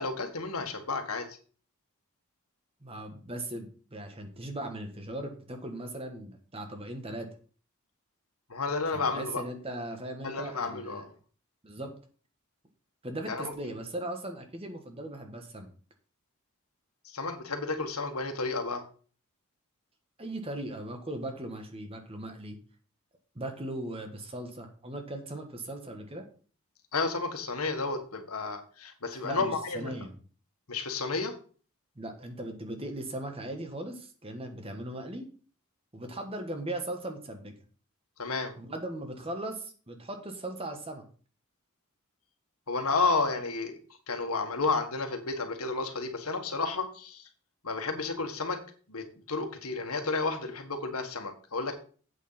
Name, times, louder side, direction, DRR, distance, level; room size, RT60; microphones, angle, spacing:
voice 1, 0.0-1.4 8.5-9.4 10.2-11.1 13.3-13.5 17.1-18.8 26.9-30.0 30.7-31.4 38.2-38.6 42.7-43.8 44.1-47.3 47.6-48.6 48.9-51.7, left 3 dB, 90° left, 5 dB, 1.7 m, -31 dB
voice 2, 2.8-7.3 8.9-11.1 11.6-11.9 13.0-15.7 20.2-22.6 23.3-26.2 29.1-30.2 31.9-35.3 35.9-37.5 38.6-41.1, right 1 dB, 25° right, 5 dB, 1.5 m, -38 dB
8.3 x 6.5 x 5.8 m, 0.41 s
head